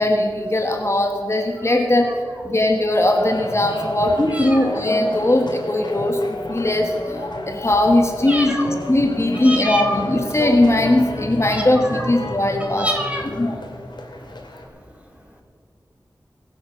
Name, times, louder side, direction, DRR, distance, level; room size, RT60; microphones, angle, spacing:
voice 1, 0.0-2.1 2.4-12.9 13.4-13.6, left 1 dB, 35° left, 4 dB, 1.3 m, -19 dB
sound 1, 3.1-14.6, left 1 dB, 75° left, 2.4 m, -33 dB
voice 2, 4.3-4.6 8.3-8.7 9.4-9.9 11.5-11.6 11.9-12.1 12.8-13.3, right 1 dB, 15° right, 1 dB, 2.5 m, -26 dB
21.5 x 7.7 x 5.7 m, 2.2 s
wide cardioid pair, 70°, 8 cm